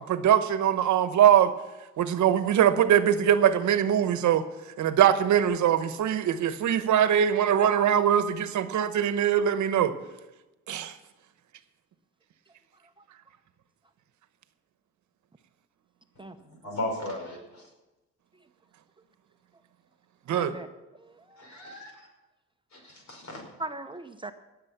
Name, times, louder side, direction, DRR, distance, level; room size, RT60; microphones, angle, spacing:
voice 1, 0.0-1.5 2.0-4.4 4.8-9.9 10.7-10.9 20.3-20.5, right 9 dB, 70° right, 11 dB, 1.0 m, -22 dB
voice 2, 16.6-17.7 21.4-22.1 22.7-23.4, left 1 dB, 65° left, 1 dB, 5.2 m, -36 dB
voice 3, 20.3-20.7 21.0-22.0 23.6-24.3, right 2 dB, 15° right, 7 dB, 0.7 m, -40 dB
18.5 x 7.6 x 5.8 m, 1.1 s
cardioid pair, 90°, 30 cm